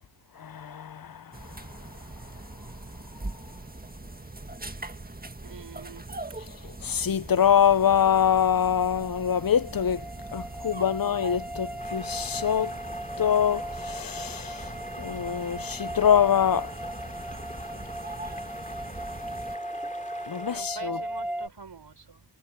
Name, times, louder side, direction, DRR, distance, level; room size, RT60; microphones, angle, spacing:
voice 1, 0.4-1.2 6.8-10.0 10.3-12.7 13.2-14.7 15.0-16.7 20.3-21.0, left 9 dB, 55° left, 0.7 m, -24 dB
sound 1, 1.3-19.6, right 2 dB, 20° right, 1.8 m, -42 dB
voice 2, 5.4-6.1 20.4-22.2, right 4 dB, 70° right, 5.0 m, -45 dB
sound 2, 8.4-21.5, right 1 dB, 5° right, 1.4 m, -38 dB
sound 3, 11.8-20.6, left 1 dB, 20° left, 2.7 m, -44 dB
wide cardioid pair, 65°, 41 cm